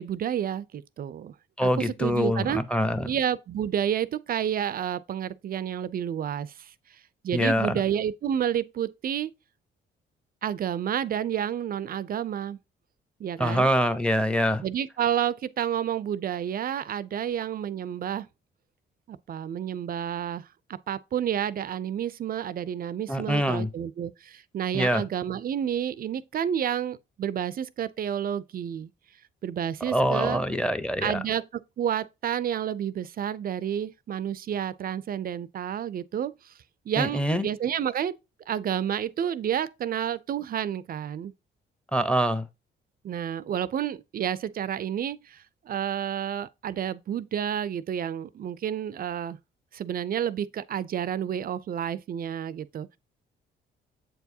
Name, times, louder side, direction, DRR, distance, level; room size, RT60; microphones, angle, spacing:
voice 1, 0.0-1.3 1.6-2.6 3.1-9.3 10.4-12.6 13.2-13.7 14.6-18.3 19.1-28.9 29.4-30.4 31.0-31.5 31.8-36.5 36.9-38.1 38.5-41.3 43.0-49.4 49.7-53.0, right 9 dB, 45° right, 0.4 m, -30 dB
voice 2, 1.6-3.1 7.3-7.8 13.4-14.6 23.1-23.7 24.7-25.0 29.8-31.2 37.0-37.5 41.9-42.4, equal, 5° left, 0.8 m, -25 dB
7.6 x 4.6 x 2.7 m
cardioid pair, 90°, 20 cm